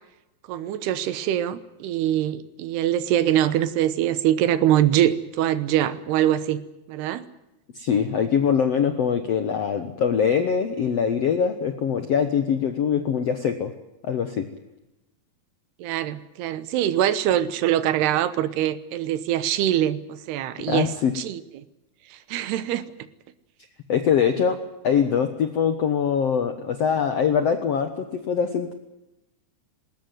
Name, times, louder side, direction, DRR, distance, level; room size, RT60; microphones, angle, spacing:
voice 1, 0.5-6.6 6.9-7.2 15.8-21.6 22.3-22.8, right 11 dB, 90° right, 14 dB, 3.1 m, -23 dB
voice 2, 7.7-13.7 14.0-14.5 20.7-21.1 23.9-24.6 24.8-28.7, left 7 dB, 70° left, 8 dB, 1.5 m, -23 dB
20.5 x 18.0 x 9.4 m, 0.93 s
omnidirectional pair, 4.6 m